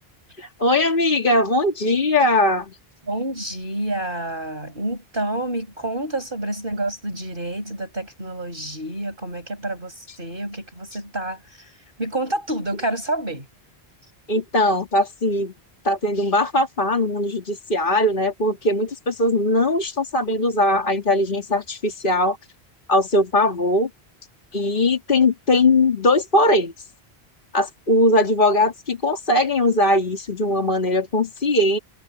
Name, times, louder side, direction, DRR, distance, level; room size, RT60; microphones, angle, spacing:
voice 1, 0.4-2.8 14.3-15.5 15.8-22.4 22.9-23.9 24.5-26.9 27.5-31.8, left 1 dB, 50° left, 2.4 m, -20 dB
voice 2, 3.1-13.5, right 1 dB, 55° right, 6.3 m, -29 dB
omnidirectional pair, 1.1 m